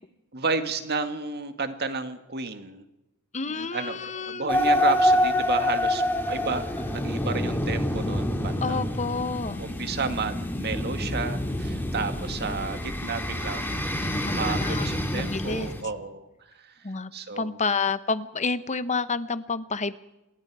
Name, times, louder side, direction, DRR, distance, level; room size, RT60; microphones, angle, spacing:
voice 1, 0.3-2.9 3.5-9.1 9.6-16.7 17.1-17.5, right 4 dB, 45° right, 8 dB, 1.9 m, -32 dB
voice 2, 3.3-4.6 8.6-9.6 14.0-14.9 15.1-15.7 16.8-20.0, left 4 dB, 30° left, 13 dB, 1.0 m, -29 dB
sound 1, 4.5-15.8, left 1 dB, 10° left, 2.3 m, -27 dB
27.0 x 21.5 x 4.9 m, 0.94 s
head